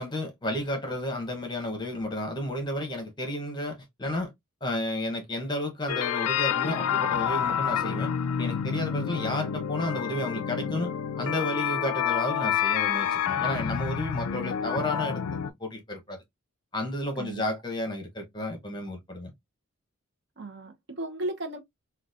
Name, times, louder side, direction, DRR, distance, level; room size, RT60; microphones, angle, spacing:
voice 1, 0.0-4.3 4.6-8.1 8.4-15.2 15.6-16.2 16.7-19.3, left 1 dB, 20° left, 0.8 m, -32 dB
sound 1, 5.9-15.5, left 8 dB, 90° left, 0.4 m, -28 dB
voice 2, 20.4-21.6, right 1 dB, 50° right, 0.7 m, -35 dB
3.9 x 2.3 x 2.5 m
head